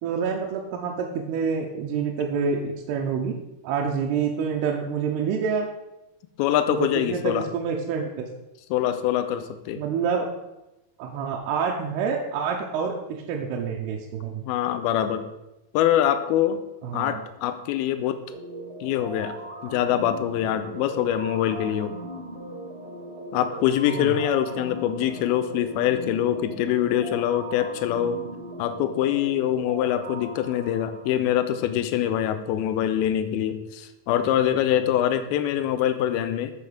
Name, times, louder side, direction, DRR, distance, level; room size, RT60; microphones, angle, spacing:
voice 1, 0.0-3.4 3.6-5.7 6.7-8.2 9.8-10.3 11.0-14.4 16.8-17.2 23.9-24.1, right 6 dB, 90° right, 1 dB, 2.8 m, -27 dB
voice 2, 6.4-7.5 8.7-9.8 14.4-15.3 15.7-16.6 16.9-18.2 18.8-19.4 19.6-22.0 23.3-28.3 28.6-36.5, left 11 dB, 85° left, 10 dB, 2.4 m, -24 dB
sound 1, 18.3-31.1, right 1 dB, 20° right, 1.7 m, -39 dB
8.3 x 7.0 x 5.0 m, 0.95 s
omnidirectional pair, 4.5 m